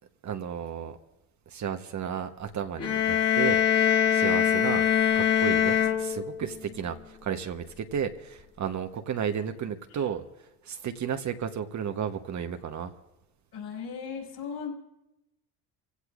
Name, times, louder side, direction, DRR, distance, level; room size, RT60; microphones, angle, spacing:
voice 1, 0.2-1.0 1.5-4.8 5.1-10.2 10.6-12.9, right 8 dB, 40° right, 7 dB, 1.0 m, -33 dB
sound 1, 2.8-6.6, left 9 dB, 30° left, 2.2 m, -23 dB
voice 2, 13.5-14.7, left 6 dB, 55° left, 0 dB, 5.4 m, -37 dB
25.5 x 16.5 x 2.5 m, 0.96 s
supercardioid pair, 85°, 46 cm